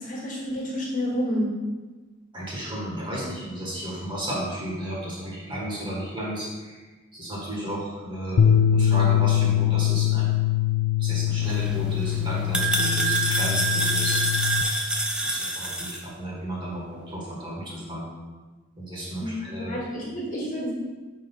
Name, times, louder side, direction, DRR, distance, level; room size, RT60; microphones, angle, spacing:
voice 1, 0.0-1.5 19.2-20.7, equal, 40° left, -4 dB, 1.8 m, -29 dB
voice 2, 2.3-6.9 7.1-10.3 11.0-14.2 15.2-18.1 18.8-19.8, right 1 dB, 25° right, -5 dB, 1.7 m, -33 dB
sound 1, 8.4-14.6, left 10 dB, 90° left, 0.3 m, -23 dB
sound 2, 11.4-16.0, right 2 dB, 5° right, 0.5 m, -26 dB
5.0 x 4.3 x 5.5 m, 1.2 s
head